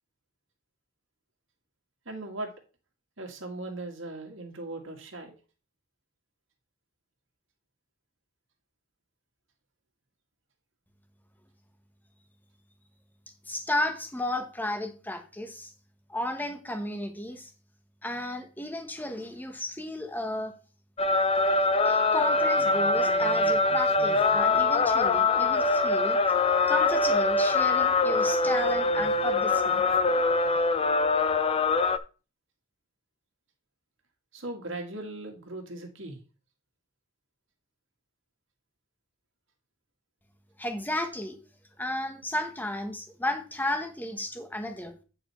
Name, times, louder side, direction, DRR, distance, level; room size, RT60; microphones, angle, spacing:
voice 1, 2.1-2.5 3.2-5.4 34.3-36.2, right 2 dB, 70° right, 2 dB, 2.1 m, -38 dB
voice 2, 13.5-15.7 16.1-17.5 18.0-20.5 21.8-26.2 26.7-29.8 40.6-41.4 41.8-44.9, left 1 dB, 10° left, 6 dB, 1.2 m, -33 dB
sound 1, 21.0-32.0, left 3 dB, 30° left, 0.5 m, -23 dB
9.3 x 4.9 x 4.4 m, 0.34 s
head